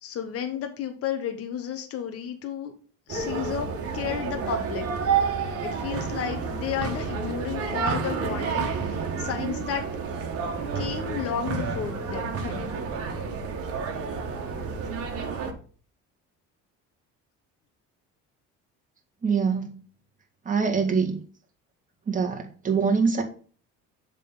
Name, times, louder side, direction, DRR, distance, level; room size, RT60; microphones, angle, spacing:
voice 1, 0.0-2.7 3.1-4.9 5.6-8.8 9.2-9.9 10.7-12.7, left 8 dB, 50° left, 6 dB, 1.2 m, -32 dB
sound 1, 3.1-15.5, right 5 dB, 50° right, 1.9 m, -30 dB
voice 2, 19.2-19.8 20.5-21.2 22.1-23.2, right 5 dB, 25° right, 2 dB, 2.0 m, -24 dB
7.2 x 4.1 x 5.6 m, 0.42 s
cardioid pair, 115°, 29 cm